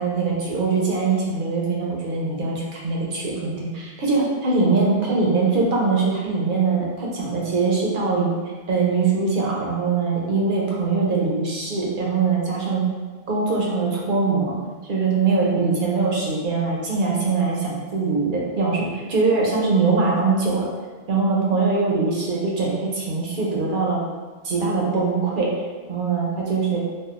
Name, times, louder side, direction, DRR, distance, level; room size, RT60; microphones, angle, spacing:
voice 1, 0.0-8.3 8.7-12.8 13.3-14.6 14.9-20.7 21.1-24.0 24.4-25.5 25.9-26.8, right 4 dB, 55° right, -3 dB, 0.8 m, -22 dB
3.5 x 2.4 x 2.5 m, 1.4 s
omnidirectional pair, 1.1 m